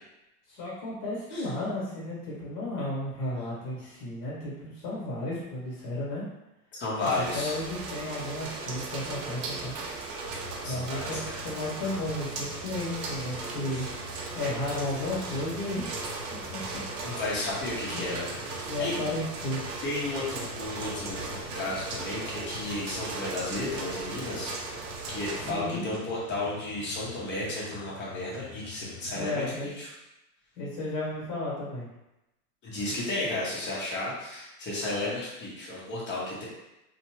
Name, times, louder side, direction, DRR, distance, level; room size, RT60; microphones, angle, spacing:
voice 1, 0.5-6.3 7.1-9.8 10.6-13.9 14.3-16.1 16.5-16.6 17.0-17.2 17.9-18.2 18.6-19.7 25.4-25.9 29.1-29.7 30.6-31.9, left 1 dB, 40° left, -6 dB, 1.5 m, -34 dB
voice 2, 6.7-7.5 10.6-11.4 13.7-13.9 17.0-19.0 19.8-24.5 25.1-29.4 29.8-29.9 32.6-36.4, left 2 dB, 25° left, -6 dB, 1.0 m, -33 dB
sound 1, 7.0-25.5, right 3 dB, 75° right, 0.8 m, -37 dB
Hiss, 10.1-29.4, left 4 dB, 65° left, 0.9 m, -46 dB
2.6 x 2.3 x 3.0 m, 0.93 s
supercardioid pair, 130°, 47 cm